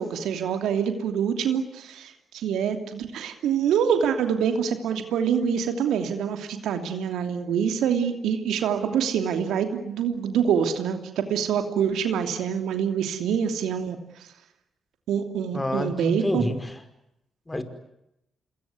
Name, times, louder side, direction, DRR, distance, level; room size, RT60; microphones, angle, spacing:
voice 1, 0.0-14.0 15.1-16.4, right 7 dB, 75° right, 7 dB, 2.9 m, -25 dB
voice 2, 15.5-16.7 17.5-17.6, left 1 dB, 20° left, 10 dB, 5.2 m, -28 dB
28.0 x 21.5 x 9.7 m, 0.83 s
hypercardioid pair, 50°, 0 cm